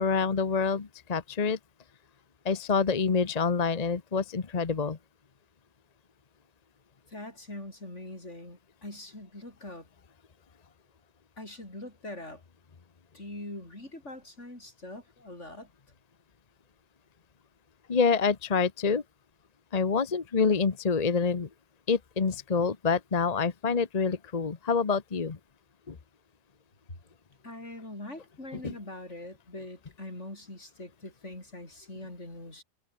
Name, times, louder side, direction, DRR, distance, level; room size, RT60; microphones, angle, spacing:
voice 1, 0.0-1.6 2.4-5.0 17.9-19.0 19.7-21.5 21.9-25.4 25.9-26.0 28.5-28.7, left 5 dB, 35° left, 1.1 m, -27 dB
voice 2, 7.1-9.9 11.4-12.4 13.1-15.7 27.4-32.6, left 1 dB, 80° left, 7.6 m, -43 dB
omnidirectional pair, 1.2 m